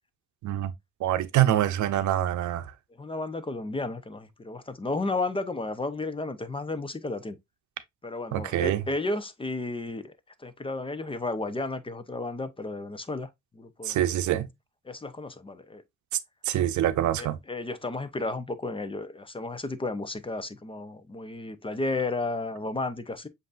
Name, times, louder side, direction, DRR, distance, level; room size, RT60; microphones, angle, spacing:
voice 1, 1.0-2.7 8.3-8.8 13.8-14.5 16.5-17.4, right 12 dB, 75° right, 0.7 m, -25 dB
voice 2, 3.0-7.4 8.0-10.1 10.4-14.0 14.9-15.8 17.2-23.3, left 2 dB, 20° left, 0.6 m, -33 dB
7.6 x 2.7 x 2.4 m
cardioid pair, 90°, 30 cm